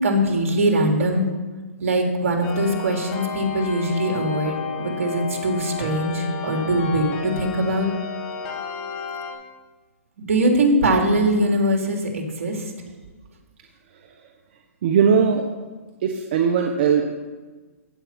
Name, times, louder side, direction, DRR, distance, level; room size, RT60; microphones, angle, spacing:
voice 1, 0.0-1.3 1.8-7.9 10.2-12.6, right 1 dB, 70° right, 1 dB, 3.5 m, -22 dB
sound 1, 2.4-9.3, left 5 dB, 30° left, 3.1 m, -32 dB
voice 2, 14.8-15.4 16.0-17.0, right 7 dB, 45° right, 3 dB, 1.3 m, -19 dB
15.5 x 5.8 x 8.8 m, 1.3 s
hypercardioid pair, 150°, 8 cm